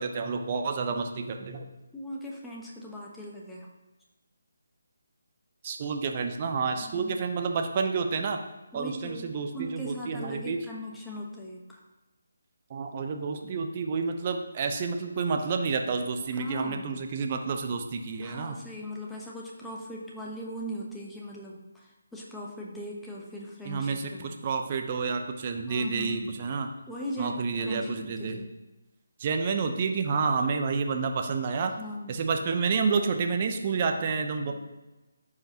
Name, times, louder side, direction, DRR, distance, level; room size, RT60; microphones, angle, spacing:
voice 1, 0.0-1.7 5.6-8.4 8.7-10.6 12.7-18.6 23.6-26.7 27.2-28.4 29.2-31.7 32.1-34.5, right 5 dB, 35° right, 4 dB, 0.8 m, -29 dB
voice 2, 1.9-3.7 6.7-7.3 8.7-11.8 16.3-17.0 18.2-24.4 25.7-26.4 26.9-28.5 31.8-32.3 34.4-34.5, equal, 5° left, -4 dB, 1.1 m, -39 dB
14.0 x 4.9 x 2.9 m, 1.1 s
figure-of-eight pair, 150°, 0 cm